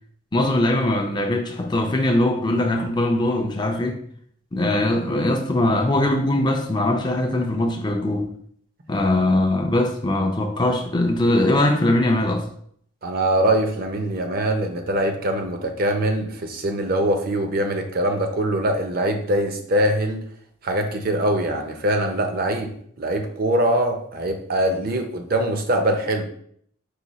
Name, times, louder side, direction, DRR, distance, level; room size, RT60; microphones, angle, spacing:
voice 1, 0.3-4.0 4.5-8.3 8.9-12.5, left 1 dB, 20° left, 0.4 m, -21 dB
voice 2, 13.0-20.2 20.6-22.7 23.0-26.2, right 1 dB, 45° right, 0.6 m, -23 dB
4.8 x 2.3 x 4.0 m
head